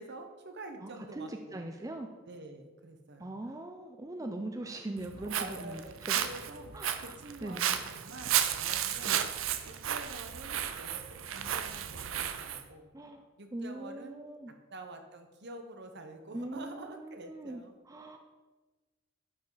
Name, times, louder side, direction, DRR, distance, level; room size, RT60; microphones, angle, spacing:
voice 1, 0.0-1.6 2.3-3.3 4.2-4.5 5.2-9.2 9.7-12.9 13.4-14.2 14.5-17.8, right 2 dB, 55° right, 6 dB, 1.0 m, -47 dB
voice 2, 0.8-2.1 3.2-5.8 6.1-6.2 6.7-7.1 7.4-7.8 9.0-9.2 12.9-13.3 13.5-14.5 16.3-18.2, right 2 dB, 15° right, 5 dB, 0.4 m, -41 dB
Walk footsteps, 5.0-12.6, right 10 dB, 70° right, 0.6 m, -33 dB
11.5 x 5.4 x 4.0 m, 1.2 s
head